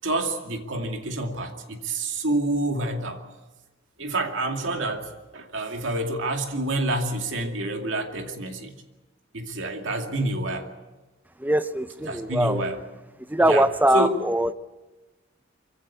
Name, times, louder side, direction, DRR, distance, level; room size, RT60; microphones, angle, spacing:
voice 1, 0.0-3.2 4.0-8.7 9.3-10.7 12.1-12.8 13.5-13.7 13.9-14.2, right 2 dB, 75° right, 4 dB, 2.4 m, -28 dB
voice 2, 11.4-12.6 13.3-14.5, right 1 dB, 10° right, 13 dB, 0.7 m, -22 dB
23.5 x 16.0 x 8.4 m, 1.2 s
head